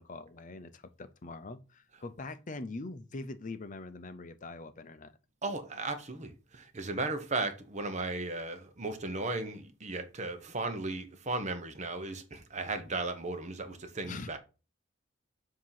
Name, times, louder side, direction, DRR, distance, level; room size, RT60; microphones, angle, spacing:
voice 1, 0.0-5.1 14.0-14.3, left 3 dB, 40° left, 0.6 m, -43 dB
voice 2, 5.4-14.4, right 3 dB, 35° right, 0.9 m, -36 dB
7.5 x 2.9 x 5.6 m
head